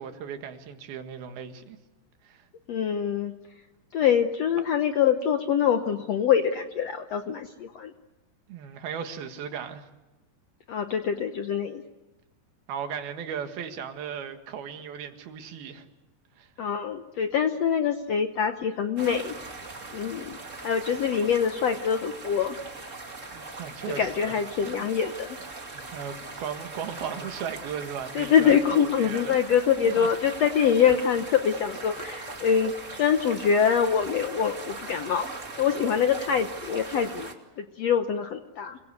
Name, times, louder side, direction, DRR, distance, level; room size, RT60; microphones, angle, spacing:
voice 1, 0.0-1.8 2.2-2.4 8.5-9.9 12.7-15.9 16.4-16.5 23.3-24.3 24.6-24.9 25.7-29.4 29.8-30.1, right 7 dB, 85° right, 7 dB, 3.6 m, -37 dB
voice 2, 2.7-3.3 3.9-7.9 10.7-11.8 16.6-19.5 19.9-20.4 20.6-22.6 23.9-25.4 28.1-35.3 35.6-38.8, left 7 dB, 70° left, 7 dB, 1.5 m, -24 dB
sound 1, 19.0-37.3, right 3 dB, 25° right, 2.3 m, -40 dB
29.0 x 21.5 x 8.2 m, 1.1 s
omnidirectional pair, 4.3 m